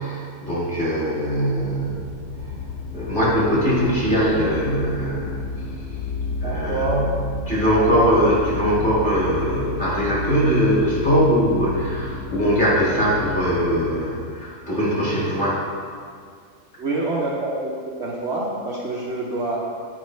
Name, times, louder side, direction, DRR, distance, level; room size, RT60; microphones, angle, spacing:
voice 1, 0.0-2.0 2.9-5.4 6.4-7.1 7.5-15.6, equal, 35° left, -7 dB, 2.1 m, -21 dB
sound 1, 1.6-13.9, left 3 dB, 80° left, 1.4 m, -32 dB
voice 2, 6.4-7.0 7.8-8.1 16.8-19.6, right 2 dB, 55° right, -4 dB, 1.0 m, -26 dB
8.6 x 5.1 x 3.2 m, 2.1 s
omnidirectional pair, 1.5 m